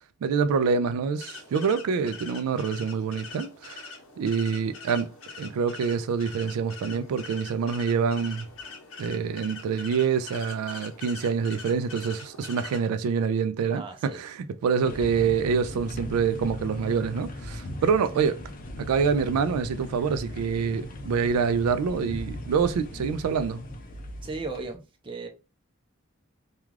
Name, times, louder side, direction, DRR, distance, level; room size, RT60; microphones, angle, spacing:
voice 1, 0.2-8.5 9.0-18.5 18.8-23.6, right 6 dB, 90° right, 0.3 m, -26 dB
sound 1, 1.2-12.9, left 4 dB, 65° left, 0.8 m, -43 dB
voice 2, 13.7-14.2 14.9-15.3 24.2-25.3, right 3 dB, 25° right, 0.5 m, -37 dB
sound 2, 14.8-24.8, left 1 dB, 40° left, 0.4 m, -38 dB
2.3 x 2.3 x 3.1 m
head